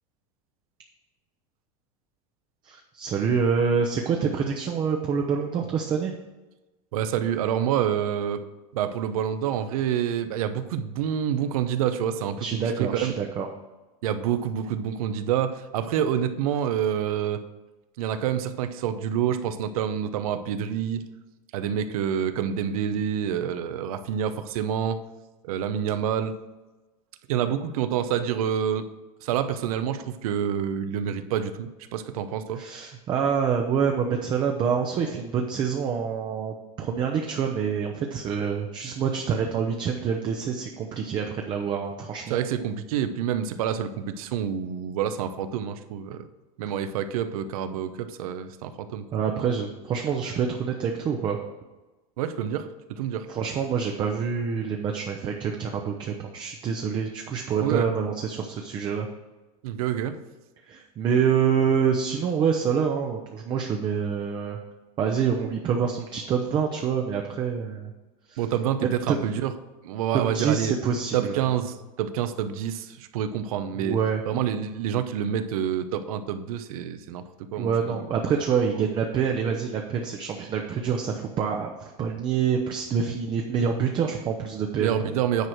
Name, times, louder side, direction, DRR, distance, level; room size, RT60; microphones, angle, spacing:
voice 1, 2.6-6.1 12.4-13.5 32.6-42.4 49.1-51.4 53.3-59.1 60.7-64.6 65.0-67.9 68.3-68.4 68.8-69.2 70.1-71.4 73.7-74.2 77.6-85.1, right 6 dB, 25° right, 3 dB, 0.7 m, -26 dB
voice 2, 6.9-8.4 8.7-13.1 14.0-17.4 18.0-21.0 21.5-25.0 25.4-26.3 27.3-28.8 29.2-32.6 42.3-46.3 46.6-49.0 52.2-53.3 57.6-57.9 59.6-60.2 68.4-69.5 69.8-70.7 71.1-74.0 74.3-78.1 84.7-85.5, right 9 dB, 85° right, 10 dB, 0.8 m, -27 dB
9.5 x 4.5 x 6.3 m, 1.1 s
supercardioid pair, 160°, 18 cm